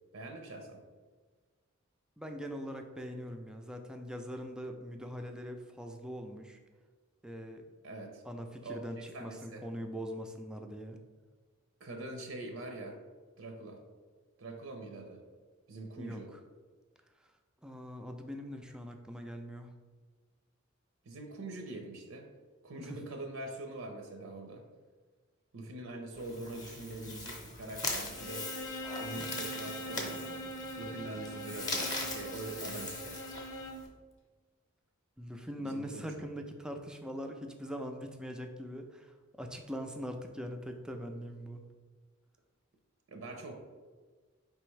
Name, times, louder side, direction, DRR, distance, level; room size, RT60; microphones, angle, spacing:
voice 1, 0.1-0.8 7.8-8.2 8.6-9.6 11.8-13.0 13.4-13.8 14.4-15.2 15.7-16.3 21.1-22.3 22.6-24.6 25.5-28.5 29.0-30.4 30.8-33.2 35.6-36.2 43.1-43.5, right 2 dB, 70° right, 4 dB, 0.6 m, -43 dB
voice 2, 2.2-6.6 7.2-7.6 8.3-11.0 16.0-16.2 17.6-19.7 22.8-23.0 35.2-41.6, equal, 5° right, 4 dB, 0.3 m, -42 dB
sound 1, 26.1-33.9, left 2 dB, 20° left, 0.7 m, -40 dB
Bowed string instrument, 28.1-33.9, equal, 70° left, 0.6 m, -42 dB
4.6 x 3.4 x 3.2 m, 1.4 s
head